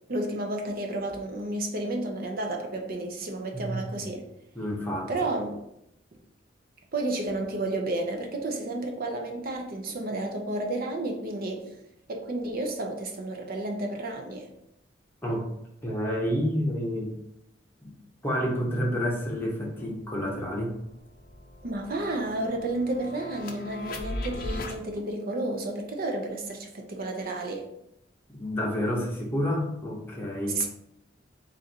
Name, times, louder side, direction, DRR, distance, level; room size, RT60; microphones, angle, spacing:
voice 1, 0.1-4.2 5.1-5.6 6.9-11.7 12.1-14.5 21.6-27.6 30.5-30.7, right 2 dB, 50° right, 2 dB, 0.6 m, -31 dB
voice 2, 4.5-5.1 15.2-15.5 15.8-17.1 17.8-17.9 18.2-20.8 28.3-30.6, equal, 10° left, -2 dB, 0.9 m, -29 dB
sound 1, 19.4-19.5 19.8-24.8, left 1 dB, 50° left, 0.6 m, -39 dB
4.1 x 2.5 x 4.2 m, 0.79 s
head